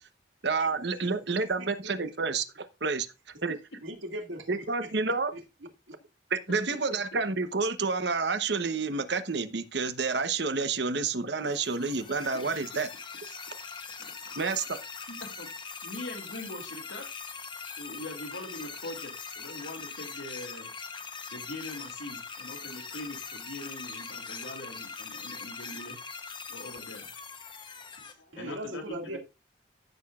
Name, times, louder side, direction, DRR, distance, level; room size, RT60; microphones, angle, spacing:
voice 1, 0.4-2.4 2.8-3.1 3.4-3.6 4.5-5.3 6.3-12.9 14.4-14.8, right 4 dB, 60° right, 1.0 m, -29 dB
voice 2, 3.8-4.9 5.3-6.0 28.3-29.2, right 1 dB, 85° right, 2.2 m, -40 dB
sound 1, 11.5-28.1, left 5 dB, 25° left, 0.9 m, -42 dB
voice 3, 14.0-14.3 15.1-15.5 15.8-17.0 17.8-20.7 21.3-26.0 26.5-27.1 28.0-29.2, left 1 dB, 75° left, 2.6 m, -42 dB
15.0 x 6.8 x 2.4 m
head